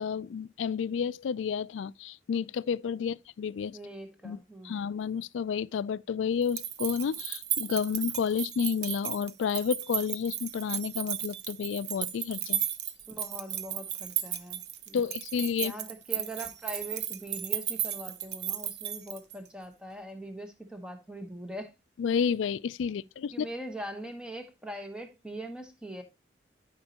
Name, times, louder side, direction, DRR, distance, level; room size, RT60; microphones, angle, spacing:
voice 1, 0.0-3.8 4.2-12.6 14.9-15.7 22.0-23.5, left 6 dB, 90° left, 0.3 m, -31 dB
voice 2, 3.7-4.7 13.1-15.1 15.6-21.8 22.9-23.0 23.3-26.0, right 1 dB, 5° right, 1.1 m, -42 dB
sound 1, 6.4-19.5, right 10 dB, 65° right, 0.7 m, -34 dB
12.5 x 5.2 x 2.8 m
head